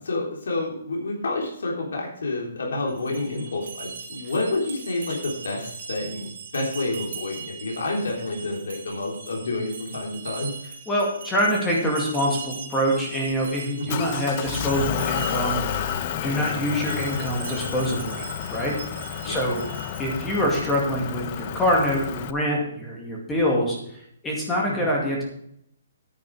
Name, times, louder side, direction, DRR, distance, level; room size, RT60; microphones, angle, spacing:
voice 1, 0.0-10.5 13.8-14.0 19.2-19.4 24.7-24.9, left 2 dB, 85° left, -1 dB, 3.5 m, -29 dB
sound 1, 2.9-20.3, right 5 dB, 45° right, 2.9 m, -40 dB
voice 2, 10.9-15.8 16.2-18.2 18.5-18.7 19.2-19.7 20.0-23.8 24.2-25.2, equal, 5° left, -2 dB, 2.2 m, -25 dB
Motor vehicle (road) / Engine, 13.9-22.3, left 10 dB, 25° left, 0.5 m, -31 dB
10.0 x 9.0 x 4.8 m, 0.71 s
hypercardioid pair, 175°, 0 cm